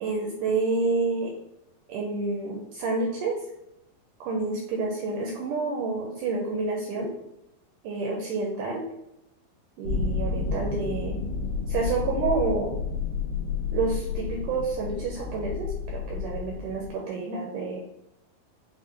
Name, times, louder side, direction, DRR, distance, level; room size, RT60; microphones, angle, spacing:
voice 1, 0.0-1.3 1.9-3.4 4.2-7.1 7.8-8.9 9.8-11.2 11.7-12.8 13.7-17.8, right 3 dB, 80° right, -1 dB, 1.8 m, -29 dB
sound 1, 9.8-16.9, left 5 dB, 90° left, 2.8 m, -31 dB
6.5 x 2.2 x 3.6 m, 0.85 s
omnidirectional pair, 4.2 m